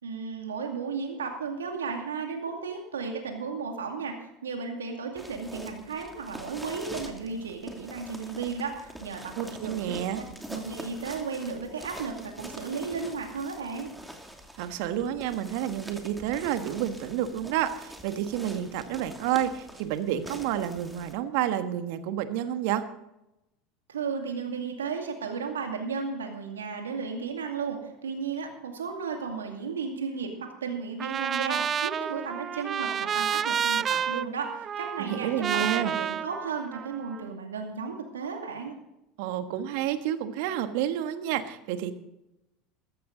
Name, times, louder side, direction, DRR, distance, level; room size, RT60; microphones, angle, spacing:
voice 1, 0.0-10.2 10.5-13.9 23.9-30.3 30.6-38.8, right 5 dB, 90° right, 3 dB, 2.4 m, -34 dB
sound 1, 5.2-21.1, right 1 dB, 5° right, 2.7 m, -45 dB
voice 2, 9.4-10.2 14.6-22.8 35.0-35.9 39.2-41.9, right 11 dB, 70° right, 9 dB, 1.4 m, -30 dB
Trumpet, 31.0-37.2, right 8 dB, 35° right, 0.4 m, -30 dB
14.5 x 14.5 x 3.9 m, 0.89 s
hypercardioid pair, 80°, 0 cm